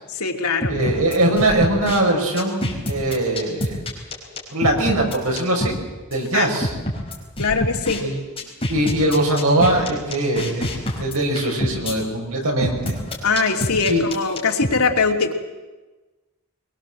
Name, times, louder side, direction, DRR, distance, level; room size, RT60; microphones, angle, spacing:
voice 1, 0.1-0.8 6.3-6.5 7.4-8.1 13.2-15.3, left 4 dB, 90° left, 2 dB, 2.8 m, -21 dB
sound 1, 0.6-2.0 2.4-5.8 6.1-6.2 6.6-8.0 8.4-11.9 12.6-14.7, left 1 dB, 25° left, 5.2 m, -27 dB
voice 2, 0.7-3.8 4.5-5.8 6.1-6.7 8.0-8.2 8.7-10.7 11.0-13.0 13.9-14.0, right 1 dB, 75° right, 0 dB, 6.0 m, -21 dB
23.5 x 22.0 x 7.7 m, 1.2 s
head